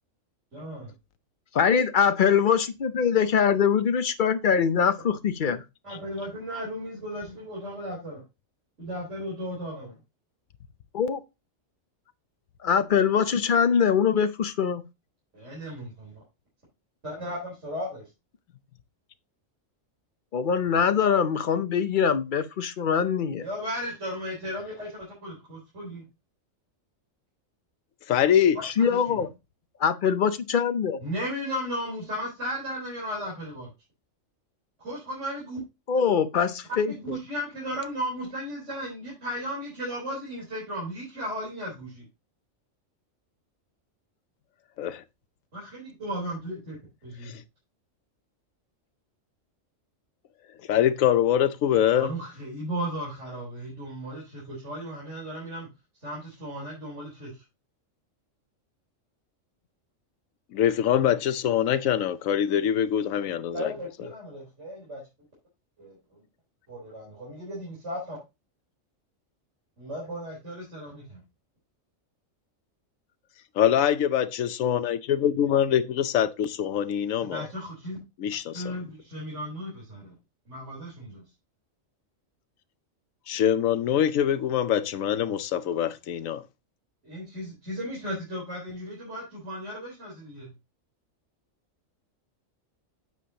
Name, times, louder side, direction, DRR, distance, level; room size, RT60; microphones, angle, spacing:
voice 1, 0.5-0.9 5.8-8.2 8.8-9.9 15.3-16.2 17.0-18.1 23.4-26.0 28.9-29.2 31.0-33.7 34.8-35.6 36.9-42.0 45.5-46.7 47.0-47.4 51.9-55.7 56.0-57.3 63.5-65.0 66.7-68.2 69.8-71.2 77.3-78.0 78.5-80.1 80.5-81.2 87.0-90.5, equal, 60° right, 4.3 m, -35 dB
voice 2, 1.5-5.6 10.9-11.2 12.6-14.8 20.3-23.5 28.6-29.3 29.8-31.0 35.9-37.2, left 7 dB, 50° left, 0.7 m, -23 dB
voice 3, 28.1-28.6 44.8-45.0 50.7-52.1 60.5-63.7 73.6-77.5 78.2-78.7 83.3-86.4, left 10 dB, 85° left, 1.1 m, -24 dB
9.3 x 6.9 x 2.8 m
omnidirectional pair, 1.4 m